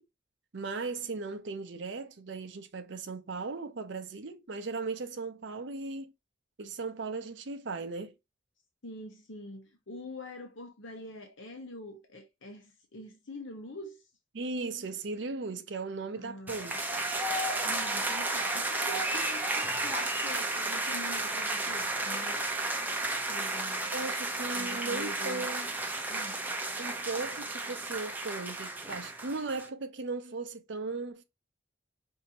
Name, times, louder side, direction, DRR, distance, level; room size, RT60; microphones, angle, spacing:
voice 1, 0.5-6.1 6.6-8.2 14.3-16.8 23.9-25.7 26.8-31.2, right 3 dB, 65° right, 0.6 m, -37 dB
voice 2, 8.8-14.1 16.1-17.0 17.6-22.4 23.3-23.9 24.5-25.5 26.1-26.5, left 1 dB, 75° left, 1.0 m, -45 dB
sound 1, 16.5-29.7, right 2 dB, 10° right, 0.6 m, -33 dB
5.1 x 2.8 x 2.7 m
head